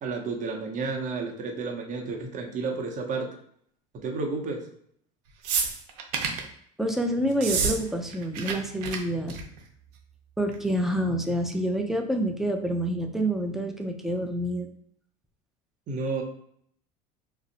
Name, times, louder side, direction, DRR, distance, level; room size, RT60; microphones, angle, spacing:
voice 1, 0.0-3.3 4.0-4.6 15.9-16.2, right 4 dB, 40° right, 1 dB, 0.8 m, -31 dB
sound 1, 5.4-6.5 7.3-7.8 8.0-8.5 8.8-9.0 9.3-9.6 10.5-10.6, right 6 dB, 80° right, 0.6 m, -28 dB
voice 2, 6.8-9.4 10.4-14.7, right 1 dB, ahead, 3 dB, 0.4 m, -27 dB
2.6 x 2.0 x 3.8 m, 0.67 s
supercardioid pair, 100°, 20 cm